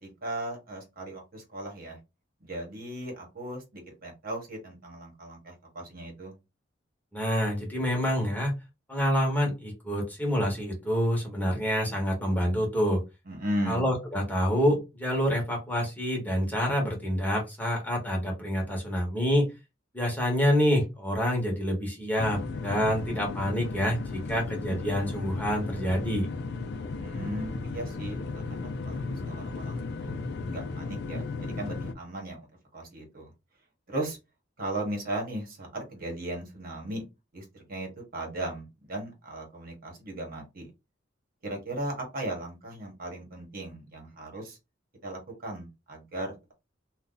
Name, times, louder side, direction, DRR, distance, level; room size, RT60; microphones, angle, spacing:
voice 1, 0.0-2.0 2.4-6.4 13.3-13.8 27.0-30.2 30.5-32.5 32.7-33.3 33.9-34.2 34.6-37.0 37.3-40.7 41.4-44.6 45.0-46.5, right 1 dB, 50° right, 1 dB, 1.1 m, -37 dB
voice 2, 7.1-8.5 8.9-13.0 13.7-19.5 19.9-26.3, equal, 10° left, -1 dB, 1.0 m, -27 dB
sound 1, 22.2-31.9, left 3 dB, 60° left, 0.4 m, -35 dB
2.6 x 2.3 x 3.7 m, 0.25 s
head